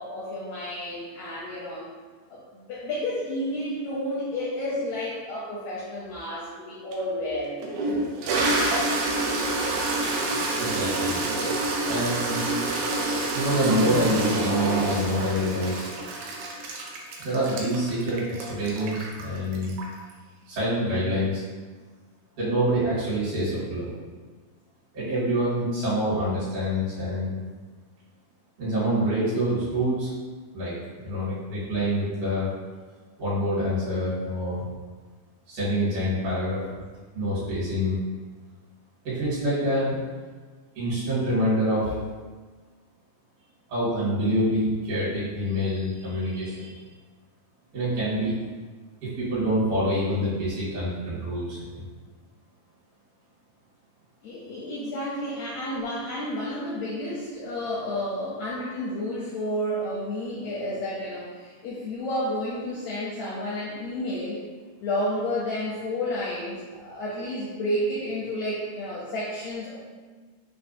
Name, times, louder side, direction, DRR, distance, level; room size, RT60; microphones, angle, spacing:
voice 1, 0.0-1.9 2.3-7.6 54.2-64.4 64.8-69.8, left 1 dB, 80° left, -7 dB, 1.6 m, -31 dB
Toilet flush, 6.9-7.0 7.6-20.1, right 2 dB, 90° right, 2.3 m, -27 dB
voice 2, 10.6-11.2 11.8-12.4 13.3-15.9 17.2-19.7 20.5-21.4 22.4-23.9 24.9-27.4 28.6-30.1 30.5-30.7 31.0-32.5 33.2-34.7 35.5-36.6 37.1-38.0 39.0-40.0 40.8-42.0 43.7-46.8 47.7-48.4 49.0-51.8, equal, 70° right, -10 dB, 3.0 m, -26 dB
5.9 x 2.2 x 2.6 m, 1.4 s
omnidirectional pair, 3.8 m